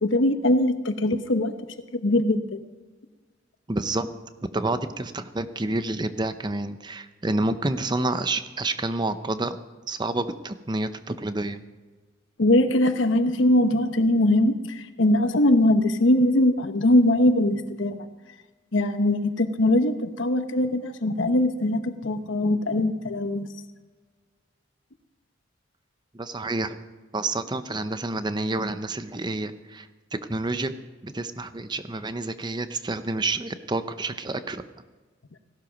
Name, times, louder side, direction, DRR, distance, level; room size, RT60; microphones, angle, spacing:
voice 1, 0.0-1.5 1.9-2.6 12.4-18.0 18.7-23.5, left 1 dB, 75° left, 9 dB, 1.0 m, -21 dB
voice 2, 3.7-4.1 4.5-9.6 9.9-11.6 26.1-26.8 27.1-30.7 31.0-34.6, right 2 dB, 20° right, 11 dB, 0.7 m, -29 dB
16.5 x 12.0 x 5.2 m, 1.3 s
head